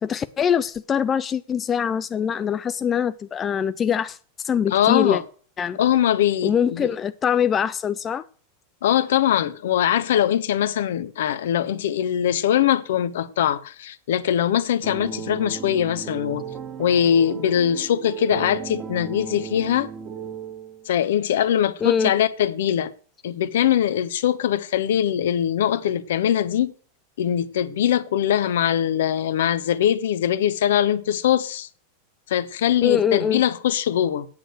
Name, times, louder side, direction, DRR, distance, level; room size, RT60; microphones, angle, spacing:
voice 1, 0.0-4.2 4.4-5.2 5.6-5.8 6.4-8.2 21.8-22.1 32.8-33.4, left 8 dB, 25° left, 0.5 m, -23 dB
voice 2, 4.7-5.2 5.7-6.9 8.8-16.4 16.8-19.9 20.9-22.9 23.2-26.7 27.2-31.7 32.3-34.3, left 10 dB, 65° left, 0.9 m, -22 dB
sound 1, 14.8-20.9, right 7 dB, 35° right, 1.4 m, -35 dB
8.8 x 7.7 x 7.9 m
figure-of-eight pair, 90°, 0 cm